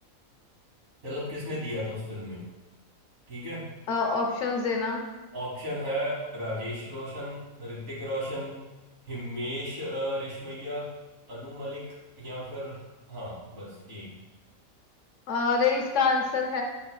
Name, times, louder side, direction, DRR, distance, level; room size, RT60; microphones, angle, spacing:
voice 1, 1.0-2.4 3.3-3.6 5.3-8.6 9.1-10.9 11.3-11.8 12.2-12.8 13.1-14.1, equal, 75° right, -6 dB, 2.1 m, -34 dB
voice 2, 3.9-5.0 15.3-16.6, left 4 dB, 70° left, 1 dB, 1.0 m, -26 dB
6.6 x 3.4 x 2.2 m, 1.2 s
omnidirectional pair, 1.4 m